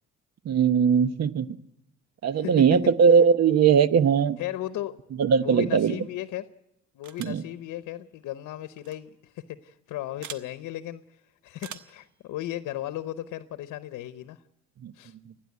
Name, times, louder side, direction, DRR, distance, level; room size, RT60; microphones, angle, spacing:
voice 1, 0.4-1.5 2.2-4.4 5.2-6.0 7.2-7.4 14.8-14.9, right 6 dB, 60° right, 14 dB, 0.9 m, -20 dB
voice 2, 4.4-5.0 5.4-6.5 6.9-14.4 14.9-15.1, left 13 dB, 85° left, 12 dB, 0.8 m, -36 dB
sound 1, 7.0-7.5 8.8-9.0 10.2-10.5 11.6-12.0, right 8 dB, 75° right, 1.2 m, -42 dB
29.5 x 10.0 x 9.4 m, 0.86 s
cardioid pair, 90°, 30 cm